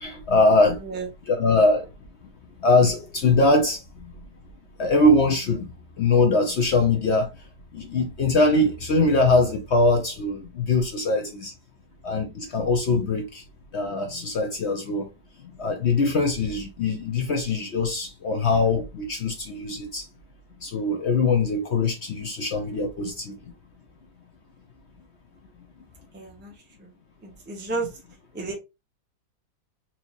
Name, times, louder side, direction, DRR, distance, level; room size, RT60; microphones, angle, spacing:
voice 1, 0.0-0.8 1.3-1.9 2.6-3.8 4.8-5.7 6.0-7.3 7.7-11.5 12.0-13.4 13.7-15.1 15.6-20.0 20.6-23.3, left 2 dB, 60° left, 0.7 m, -22 dB
voice 2, 26.1-26.5 26.8-26.9 27.2-27.9 28.3-28.6, right 3 dB, 5° right, 1.0 m, -32 dB
4.4 x 2.8 x 2.6 m
omnidirectional pair, 1.8 m